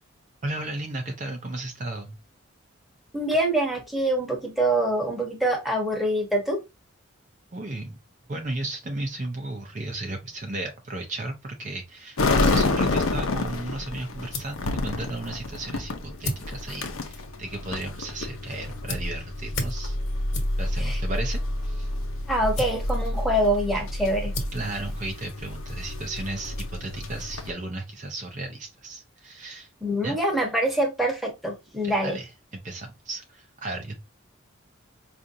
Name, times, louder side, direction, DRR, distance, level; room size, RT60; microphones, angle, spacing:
voice 1, 0.4-2.2 7.5-8.0 8.3-20.0 20.6-21.9 24.5-29.7 30.0-30.2 32.0-34.0, right 2 dB, 35° right, 0.6 m, -34 dB
voice 2, 3.1-6.6 20.8-21.0 22.3-24.3 29.8-32.2, right 1 dB, ahead, 1.0 m, -25 dB
sound 1, 12.2-27.5, left 2 dB, 85° left, 0.7 m, -29 dB
sound 2, 13.7-25.9, left 1 dB, 55° left, 1.2 m, -40 dB
4.8 x 2.5 x 2.6 m
head